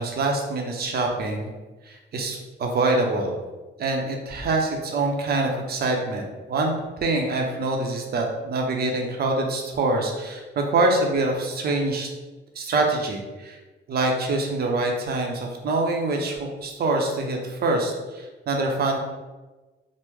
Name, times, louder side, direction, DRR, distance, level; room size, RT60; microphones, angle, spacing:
voice 1, 0.0-1.5 1.8-3.3 3.8-12.1 12.5-13.6 13.9-19.0, right 2 dB, 55° right, 1 dB, 0.6 m, -25 dB
3.1 x 2.0 x 3.4 m, 1.2 s
cardioid pair, 90°, 20 cm